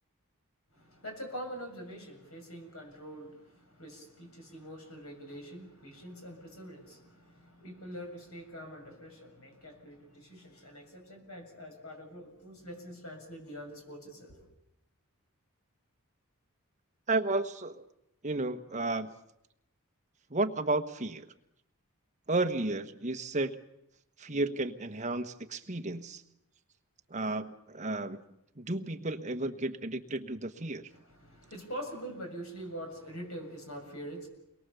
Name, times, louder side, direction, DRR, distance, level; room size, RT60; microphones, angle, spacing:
voice 1, 0.7-14.5 30.9-34.3, equal, 80° left, 3 dB, 7.3 m, -44 dB
voice 2, 17.1-17.8 18.2-19.1 20.3-21.3 22.3-23.6 24.2-26.2 27.1-28.2 28.6-30.9, right 2 dB, 35° right, 7 dB, 1.3 m, -32 dB
29.5 x 22.5 x 7.0 m, 0.83 s
head